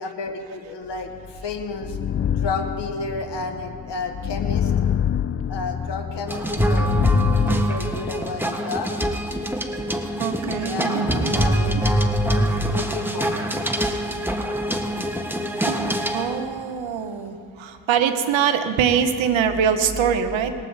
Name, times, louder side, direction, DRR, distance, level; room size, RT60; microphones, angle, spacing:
voice 1, 0.0-2.0 2.3-4.7 5.5-6.9 7.4-8.9 10.6-13.5, left 3 dB, 65° left, 6 dB, 1.4 m, -32 dB
sound 1, 1.2-7.6, left 9 dB, 30° left, 0.4 m, -26 dB
sound 2, 6.3-16.5, equal, 5° right, 1.5 m, -24 dB
voice 2, 10.2-11.5 11.7-11.9 15.6-20.5, right 7 dB, 80° right, 8 dB, 1.1 m, -23 dB
21.0 x 8.3 x 4.0 m, 2.1 s
supercardioid pair, 45°, 45 cm